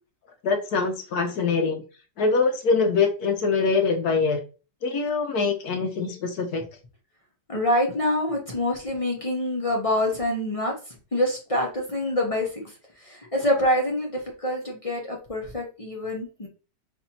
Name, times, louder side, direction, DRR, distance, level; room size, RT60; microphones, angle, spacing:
voice 1, 0.4-1.8 2.2-4.4 4.8-6.6, left 4 dB, 70° left, 5 dB, 1.0 m, -23 dB
voice 2, 7.5-16.5, left 1 dB, 40° left, -2 dB, 0.4 m, -26 dB
4.4 x 3.2 x 2.8 m, 0.34 s
omnidirectional pair, 1.9 m